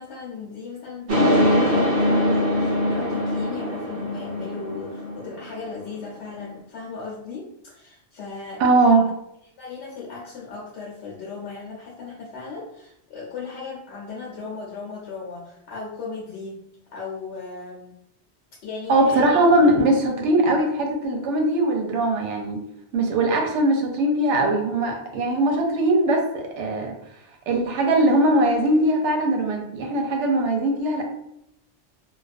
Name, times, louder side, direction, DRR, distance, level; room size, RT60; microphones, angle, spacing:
voice 1, 0.0-8.6 9.6-16.6 16.9-18.0 18.6-19.2, left 4 dB, 75° left, -4 dB, 0.8 m, -37 dB
sound 1, 1.1-5.6 6.0-6.1 6.3-6.4, left 1 dB, 50° right, 0.8 m, -22 dB
voice 2, 8.6-9.1 18.9-22.6 22.9-27.0 27.5-31.0, right 1 dB, 90° right, 2 dB, 0.9 m, -20 dB
2.3 x 2.3 x 2.4 m, 0.78 s
omnidirectional pair, 1.2 m